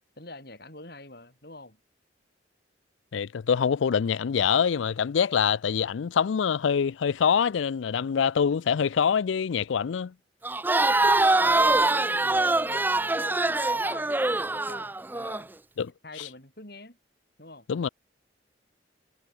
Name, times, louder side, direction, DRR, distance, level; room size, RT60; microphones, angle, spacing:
voice 1, 0.2-1.8 10.7-11.8 12.2-15.5 16.0-17.0 17.4-17.7, left 2 dB, 55° left, 7.5 m, -45 dB
voice 2, 3.1-10.1 15.8-15.9 16.2-16.3 17.7-17.9, left 7 dB, 90° left, 0.4 m, -25 dB
Crowd, 10.4-15.4, right 2 dB, 10° right, 0.5 m, -24 dB
head